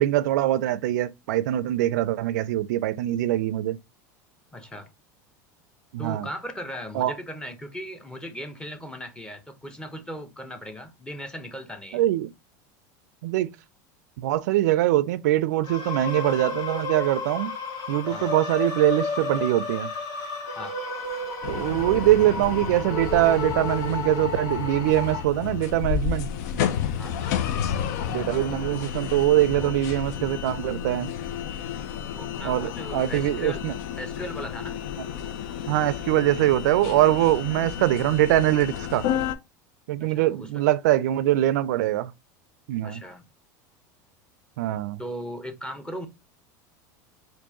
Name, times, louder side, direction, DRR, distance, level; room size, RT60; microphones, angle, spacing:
voice 1, 0.0-3.8 5.9-6.3 7.0-7.1 11.9-12.3 13.2-13.5 14.2-17.5 17.9-19.9 21.5-26.3 28.1-31.1 32.4-33.7 35.0-35.1 35.7-39.1 39.9-42.1 42.7-43.0 44.6-45.0, right 14 dB, 80° right, 0.4 m, -23 dB
voice 2, 4.5-4.9 6.0-12.1 18.1-18.3 20.6-20.8 27.0-27.3 29.6-29.7 32.1-34.8 40.0-40.7 42.8-43.2 45.0-46.1, equal, 10° left, 0.8 m, -38 dB
sound 1, 15.6-25.2, left 3 dB, 45° left, 1.6 m, -32 dB
sound 2, 21.4-39.3, left 8 dB, 75° left, 0.5 m, -31 dB
4.4 x 2.5 x 2.8 m
supercardioid pair, 105°, 9 cm